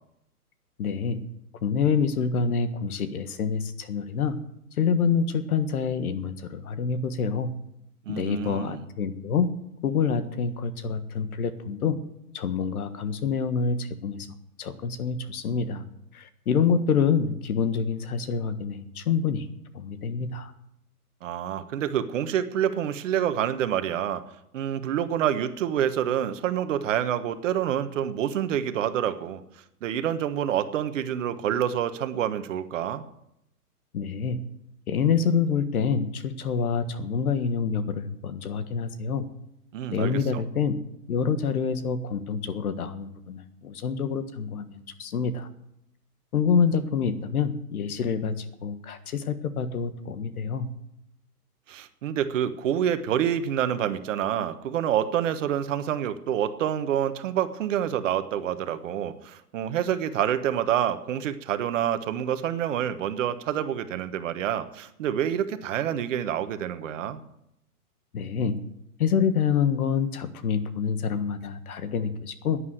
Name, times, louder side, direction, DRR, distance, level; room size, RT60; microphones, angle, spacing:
voice 1, 0.8-1.2 1.6-4.4 4.8-7.5 8.1-9.5 9.8-12.0 12.3-14.3 14.6-15.8 16.1-19.5 19.7-20.5 33.9-34.4 34.9-39.3 39.9-40.8 41.1-45.5 46.3-50.7 68.1-68.6 69.0-72.6, left 6 dB, 65° left, 11 dB, 1.6 m, -27 dB
voice 2, 8.1-8.8 21.2-24.2 24.5-29.4 29.8-33.0 39.7-40.4 51.7-67.2, right 10 dB, 55° right, 10 dB, 1.3 m, -27 dB
11.0 x 9.8 x 7.9 m, 0.80 s
hypercardioid pair, 125°, 46 cm